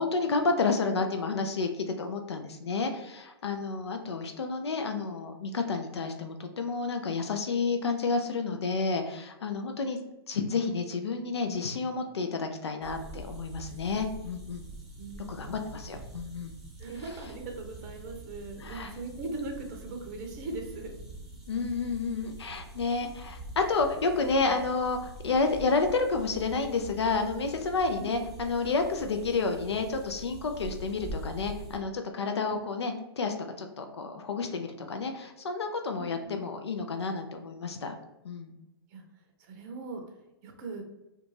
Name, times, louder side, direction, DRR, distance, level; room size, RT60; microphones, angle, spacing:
voice 1, 0.0-10.0 10.3-14.6 15.3-16.5 18.6-18.9 21.5-38.0 38.2-38.5, left 4 dB, 85° left, 5 dB, 0.4 m, -30 dB
sound 1, 12.8-31.7, right 2 dB, 5° right, 0.7 m, -45 dB
voice 2, 15.0-15.7 16.8-20.9 28.0-28.2 32.5-32.6 36.0-36.4 38.9-39.0 39.4-40.0 40.4-40.9, right 3 dB, 40° right, 3 dB, 0.6 m, -40 dB
2.4 x 2.2 x 3.1 m, 0.94 s
hypercardioid pair, 130°, 14 cm